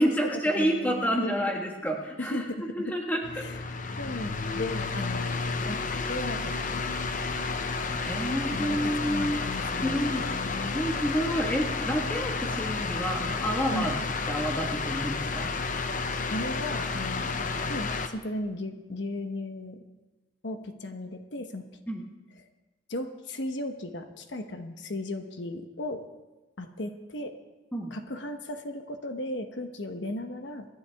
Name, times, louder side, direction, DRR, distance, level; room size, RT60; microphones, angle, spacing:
voice 1, 0.0-3.4 8.0-9.4 9.8-10.3 10.7-14.0 14.3-15.5 21.9-22.0 27.7-27.9, equal, 10° left, 1 dB, 1.6 m, -29 dB
voice 2, 0.6-1.5 2.2-3.0 3.3-3.6 4.0-5.8 6.1-6.8 8.2-10.8 13.7-13.9 16.3-19.8 20.4-21.7 22.9-26.0 26.6-27.4 27.9-30.7, left 1 dB, 70° left, 6 dB, 1.1 m, -36 dB
sound 1, 3.2-18.1, left 4 dB, 45° left, 0.8 m, -31 dB
25.5 x 11.5 x 3.5 m, 1.1 s
head